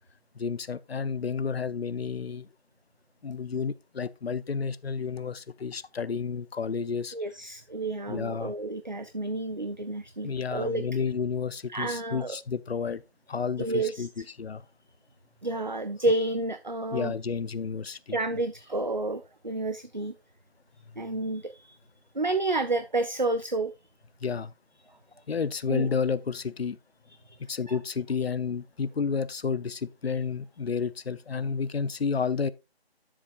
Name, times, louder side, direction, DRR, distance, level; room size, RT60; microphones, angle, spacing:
voice 1, 0.3-2.5 3.2-7.1 8.1-8.5 10.2-13.0 13.3-14.6 16.9-18.2 24.2-24.5 25.3-26.8 27.5-32.5, left 5 dB, 65° left, 0.6 m, -31 dB
voice 2, 7.1-10.8 11.7-12.4 13.6-14.1 15.4-17.1 18.1-20.1 21.0-21.8 22.1-23.7 25.7-25.9 27.3-27.4 27.7-27.8, right 2 dB, 45° right, 0.4 m, -30 dB
10.0 x 7.2 x 2.4 m
figure-of-eight pair, 175°, 32 cm